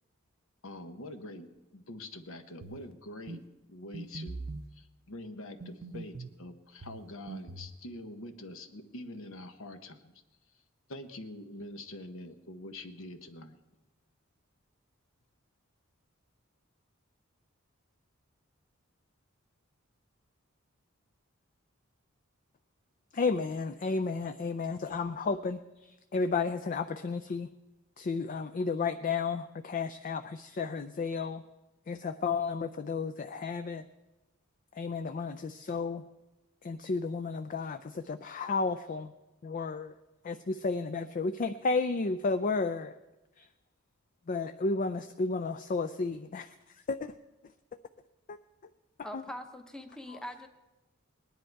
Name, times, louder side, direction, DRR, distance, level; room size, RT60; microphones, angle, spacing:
voice 1, 0.6-3.4 3.7-4.4 4.7-10.1 10.9-13.6, left 1 dB, 70° left, 8 dB, 1.0 m, -45 dB
sound 1, 2.6-2.9 3.3-3.4 3.9-4.7 5.6-6.4 6.8-7.8, right 3 dB, 50° right, 0.6 m, -42 dB
voice 2, 23.1-27.5 28.0-31.4 31.9-33.8 34.7-36.0 36.6-39.1 39.4-39.9 40.2-42.9 43.4-43.5 44.3-47.1 48.3-48.4 49.1-49.2 50.1-50.2, left 4 dB, 40° left, 9 dB, 0.4 m, -32 dB
voice 3, 49.0-50.5, left 1 dB, 5° left, 6 dB, 0.8 m, -42 dB
19.5 x 10.5 x 4.6 m, 1.0 s
head